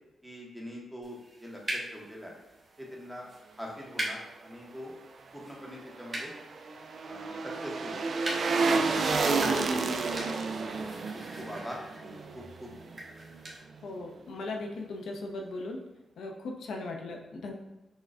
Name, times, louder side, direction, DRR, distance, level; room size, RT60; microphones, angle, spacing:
voice 1, 0.2-2.4 2.8-3.3 3.6-4.9 5.3-6.3 7.0-8.1 8.7-10.1 10.4-13.0, equal, ahead, -3 dB, 0.8 m, -44 dB
sound 1, 1.0-13.6, right 1 dB, 25° right, 0.9 m, -42 dB
sound 2, 5.8-13.0 13.3-13.4, right 4 dB, 55° right, 0.3 m, -30 dB
voice 2, 13.8-15.8 16.2-17.5, left 2 dB, 90° left, 1 dB, 0.7 m, -38 dB
6.2 x 2.2 x 2.4 m, 1.0 s
wide cardioid pair, 145°, 0 cm